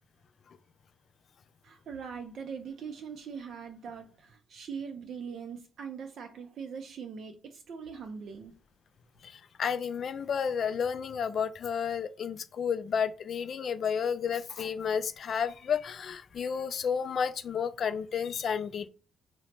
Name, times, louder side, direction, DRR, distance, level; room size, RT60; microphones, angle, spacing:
voice 1, 1.6-8.6, right 6 dB, 65° right, 0.4 m, -41 dB
voice 2, 9.2-18.9, left 7 dB, 55° left, 0.3 m, -31 dB
2.8 x 2.0 x 3.1 m
cardioid pair, 90°, 0 cm